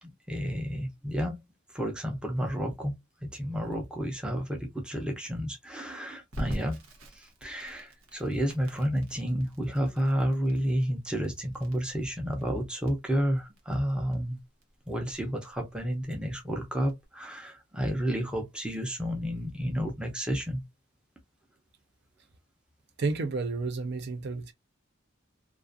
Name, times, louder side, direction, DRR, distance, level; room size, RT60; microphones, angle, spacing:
voice 1, 0.0-1.4 1.7-6.8 7.1-14.4 14.9-20.6, equal, 5° right, 0.6 m, -31 dB
Crackle, 6.3-17.1, equal, 90° right, 0.9 m, -45 dB
voice 2, 23.0-24.5, right 3 dB, 55° right, 0.5 m, -31 dB
2.4 x 2.4 x 2.4 m
head